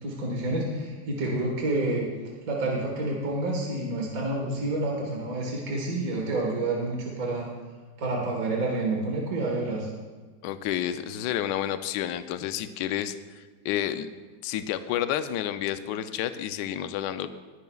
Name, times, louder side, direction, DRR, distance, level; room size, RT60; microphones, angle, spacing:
voice 1, 0.0-2.1 2.5-7.5 8.0-9.9, right 2 dB, 50° right, -2 dB, 1.9 m, -28 dB
voice 2, 10.4-14.1 14.4-17.3, left 11 dB, 75° left, 10 dB, 1.2 m, -30 dB
20.5 x 10.5 x 2.3 m, 1.4 s
omnidirectional pair, 2.0 m